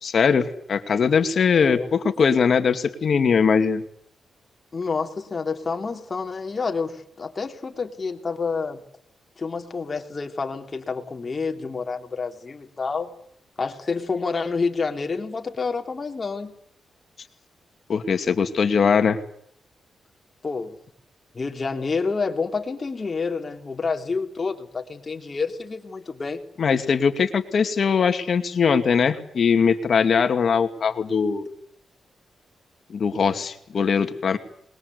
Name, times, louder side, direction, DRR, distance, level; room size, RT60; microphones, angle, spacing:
voice 1, 0.0-3.8 17.9-19.2 26.6-31.5 32.9-34.4, left 6 dB, 55° left, 8 dB, 2.4 m, -21 dB
voice 2, 1.6-1.9 4.7-8.8 9.4-13.1 13.6-16.5 20.4-20.8 21.3-26.4, left 4 dB, 35° left, 4 dB, 3.4 m, -28 dB
27.0 x 21.5 x 8.2 m, 0.68 s
cardioid pair, 100°, 0 cm